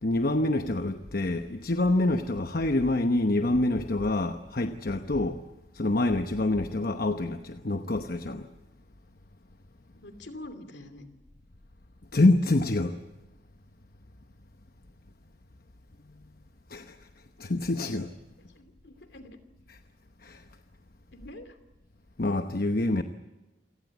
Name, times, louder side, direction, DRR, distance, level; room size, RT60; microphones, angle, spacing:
voice 1, 0.0-5.4 5.7-8.5 12.1-13.0 16.7-17.0 17.4-18.1 20.2-20.4 22.2-23.0, left 2 dB, 50° left, 1.0 m, -26 dB
voice 2, 10.0-11.0 18.5-19.4 21.1-21.6, left 1 dB, 65° left, 2.8 m, -45 dB
27.5 x 17.5 x 8.3 m
head